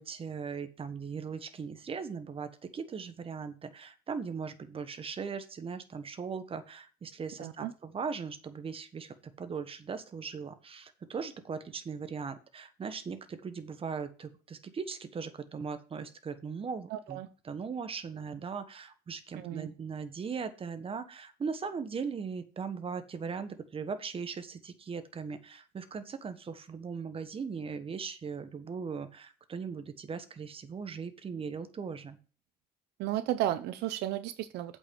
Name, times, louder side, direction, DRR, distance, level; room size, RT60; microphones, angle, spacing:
voice 1, 0.0-32.2, right 5 dB, 35° right, 10 dB, 1.3 m, -39 dB
voice 2, 7.4-7.7 16.9-17.3 19.3-19.7 33.0-34.8, right 13 dB, 85° right, 12 dB, 0.7 m, -33 dB
8.1 x 5.6 x 5.2 m, 0.36 s
cardioid pair, 110°, 17 cm